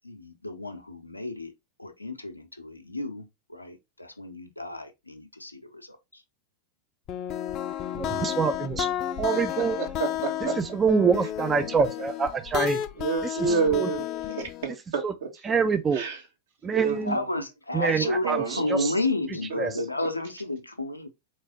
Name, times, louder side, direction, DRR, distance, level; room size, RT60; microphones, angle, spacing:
voice 1, 0.0-1.5 1.8-6.2 16.9-21.1, left 2 dB, 85° left, 0.6 m, -32 dB
sound 1, 7.1-14.7, left 11 dB, 35° left, 0.5 m, -32 dB
voice 2, 7.9-8.9 9.2-9.8 10.6-12.8 13.2-13.4 13.7-13.9 15.0-15.1 15.4-16.0 16.6-17.2 17.7-18.9 19.6-19.7, right 5 dB, 20° right, 0.4 m, -25 dB
voice 3, 10.0-10.5 13.0-14.1 14.3-15.3 15.9-16.2 16.7-17.2 18.0-18.9, right 6 dB, 60° right, 1.4 m, -29 dB
4.0 x 3.1 x 4.0 m
figure-of-eight pair, 90°, 0 cm